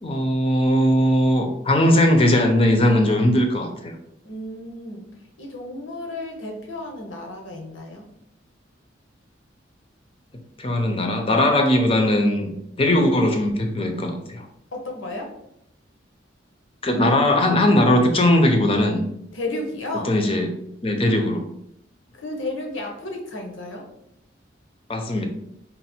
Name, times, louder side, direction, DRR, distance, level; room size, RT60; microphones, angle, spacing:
voice 1, 0.0-3.9 10.6-12.5 12.8-14.4 16.8-19.0 20.0-20.5 20.8-21.4 24.9-25.3, left 1 dB, 30° left, 4 dB, 0.5 m, -19 dB
voice 2, 4.2-5.1 5.4-8.0 14.7-15.3 19.3-20.1 22.2-23.9, left 2 dB, 90° left, 1 dB, 1.0 m, -32 dB
4.1 x 2.1 x 4.2 m, 0.77 s
head